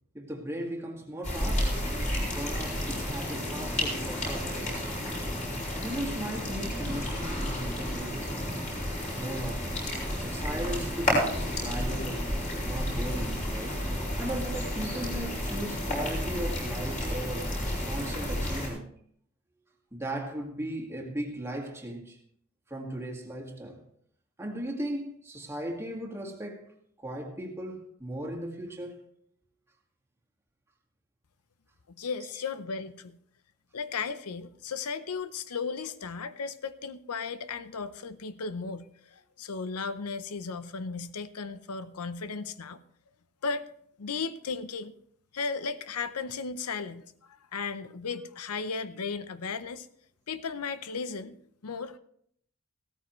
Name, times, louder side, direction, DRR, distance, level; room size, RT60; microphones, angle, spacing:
voice 1, 0.1-1.9 2.3-4.9 5.8-8.3 9.1-9.8 10.2-12.3 12.6-13.8 14.2-17.5 17.9-18.9 19.9-22.2 22.7-23.8 24.4-26.7 27.0-29.0, right 1 dB, 10° right, 1.9 m, -37 dB
sound 1, 1.2-18.7, equal, 35° left, 5.4 m, -31 dB
voice 2, 31.9-33.2 33.7-42.8 43.4-43.7 44.0-44.9 45.3-49.9 50.3-51.4 51.6-52.0, left 5 dB, 90° left, 0.7 m, -35 dB
16.0 x 14.0 x 3.1 m
head